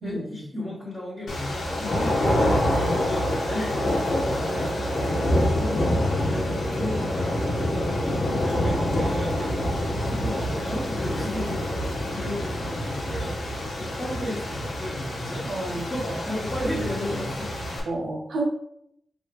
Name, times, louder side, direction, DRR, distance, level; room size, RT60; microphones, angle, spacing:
voice 1, 0.0-2.2 3.0-4.0 4.3-7.0 7.5-9.5 10.0-17.5, left 1 dB, 20° left, -10 dB, 1.6 m, -34 dB
sound 1, 1.3-17.8, left 1 dB, 75° left, 1.1 m, -26 dB
voice 2, 2.7-3.1 15.4-15.8 17.9-18.4, right 2 dB, 80° right, 0 dB, 0.9 m, -31 dB
4.6 x 2.9 x 3.0 m, 0.73 s
cardioid pair, 85°, 0 cm